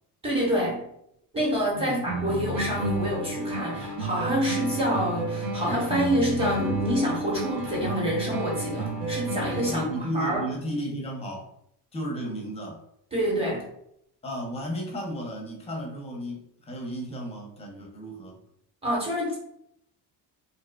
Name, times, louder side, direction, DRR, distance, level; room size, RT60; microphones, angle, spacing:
voice 1, 0.2-0.8 1.3-10.4 13.1-13.7 18.8-19.4, equal, 15° right, -4 dB, 1.0 m, -27 dB
voice 2, 1.7-2.1 9.7-11.5 11.9-12.8 14.2-18.4, equal, 15° left, 0 dB, 0.6 m, -34 dB
sound 1, 2.1-10.0, right 2 dB, 85° right, 1.0 m, -31 dB
2.6 x 2.2 x 2.2 m, 0.74 s
cardioid pair, 130°, 41 cm